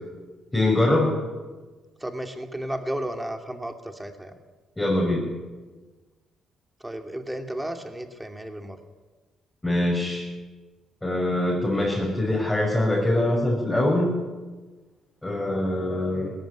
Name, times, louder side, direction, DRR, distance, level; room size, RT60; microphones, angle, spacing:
voice 1, 0.5-1.1 4.8-5.3 9.6-10.3 11.0-14.1 15.2-16.3, left 1 dB, 10° left, -4 dB, 6.3 m, -23 dB
voice 2, 2.0-4.3 6.8-8.8, right 1 dB, 10° right, 6 dB, 2.7 m, -33 dB
18.0 x 15.0 x 9.7 m, 1.3 s
cardioid pair, 90°, 0 cm